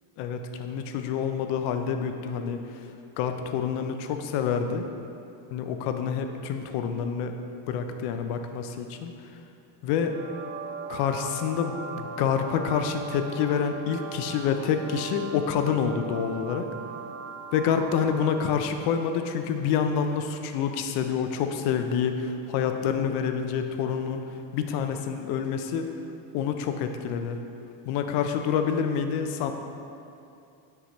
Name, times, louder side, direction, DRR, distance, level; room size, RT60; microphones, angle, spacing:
voice 1, 0.2-2.6 3.2-4.8 5.5-7.3 7.7-9.1 9.8-10.1 10.9-16.7 17.5-24.2 24.5-25.9 26.3-27.4 27.8-29.5, left 7 dB, 65° left, 6 dB, 0.5 m, -27 dB
sound 1, 10.0-18.8, right 4 dB, 70° right, 0.6 m, -39 dB
6.5 x 4.8 x 3.0 m, 2.6 s
cardioid pair, 155°, 45 cm